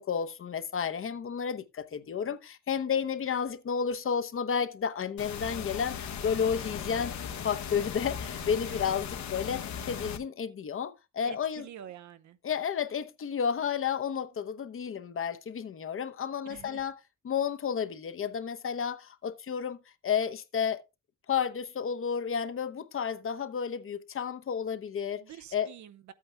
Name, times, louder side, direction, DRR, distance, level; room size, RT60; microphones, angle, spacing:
voice 1, 0.0-7.2 7.4-11.7 12.4-17.0 17.2-20.8 21.3-25.2 25.5-25.7, left 7 dB, 45° left, 0.9 m, -32 dB
sound 1, 5.2-10.2, left 7 dB, 65° left, 1.2 m, -37 dB
voice 2, 8.3-9.0 11.2-12.4 16.4-16.9 25.2-26.1, right 10 dB, 70° right, 0.9 m, -48 dB
13.0 x 8.5 x 2.3 m
cardioid pair, 90°, 30 cm